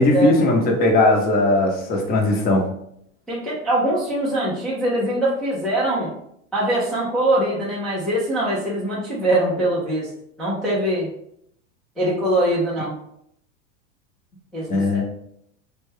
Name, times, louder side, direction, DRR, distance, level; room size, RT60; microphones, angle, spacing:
voice 1, 0.0-2.7 14.7-15.0, left 2 dB, 25° left, 1 dB, 0.7 m, -18 dB
voice 2, 3.3-6.1 6.5-10.1 10.4-11.1 12.0-13.0 14.5-15.0, right 1 dB, ahead, -8 dB, 0.3 m, -22 dB
4.1 x 2.2 x 3.2 m, 0.73 s
supercardioid pair, 145°, 37 cm